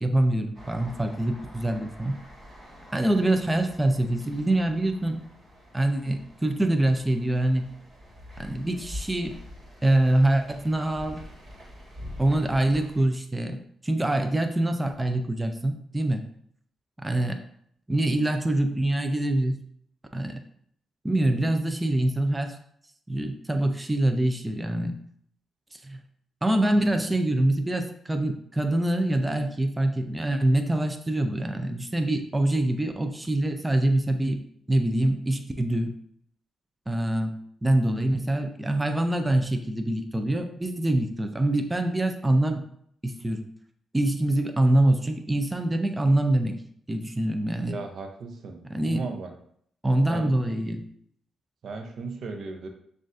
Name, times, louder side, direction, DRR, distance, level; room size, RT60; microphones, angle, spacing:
voice 1, 0.0-2.2 2.9-5.2 5.7-7.7 8.4-9.4 9.8-11.2 12.2-13.6 13.8-16.2 17.0-17.4 17.9-19.6 20.1-20.4 21.0-22.6 23.1-25.0 25.7-26.0 26.4-34.4 34.7-35.9 36.9-42.6 43.0-43.4 43.9-46.6 46.9-47.8 48.7-49.1 49.8-50.9, right 1 dB, 15° right, 6 dB, 0.4 m, -25 dB
sound 1, 0.5-13.1, left 1 dB, 35° right, 1.6 m, -45 dB
voice 2, 47.7-48.6 48.9-49.3 50.1-50.4 51.6-52.7, right 3 dB, 65° right, 5 dB, 0.5 m, -36 dB
6.3 x 2.5 x 2.5 m, 0.66 s
cardioid pair, 70°, 0 cm